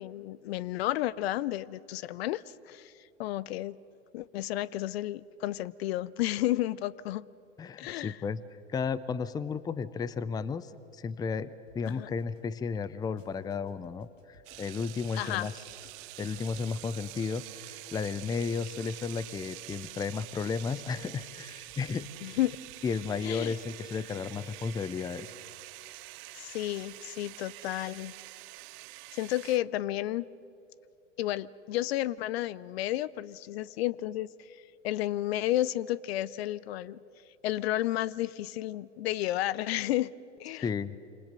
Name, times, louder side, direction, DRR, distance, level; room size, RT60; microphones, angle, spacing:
voice 1, 0.0-2.9 3.2-3.8 4.1-7.3 7.8-8.2 11.9-12.1 15.2-15.5 22.2-22.6 23.2-23.6 26.3-28.1 29.1-30.3 31.2-37.0 37.4-40.1 40.4-40.7, left 14 dB, 55° left, 21 dB, 0.7 m, -32 dB
voice 2, 7.6-8.4 8.7-15.5 16.2-22.1 22.8-25.3 40.6-41.0, left 5 dB, 10° left, 17 dB, 0.6 m, -33 dB
sound 1, 11.7-12.4 12.8-17.8 18.0-23.2 23.5-23.6, left 3 dB, 85° left, 2.9 m, -61 dB
sound 2, 14.4-29.6, right 24 dB, 35° right, 0.5 m, -46 dB
27.5 x 26.0 x 6.8 m, 2.7 s
hypercardioid pair, 95°, 37 cm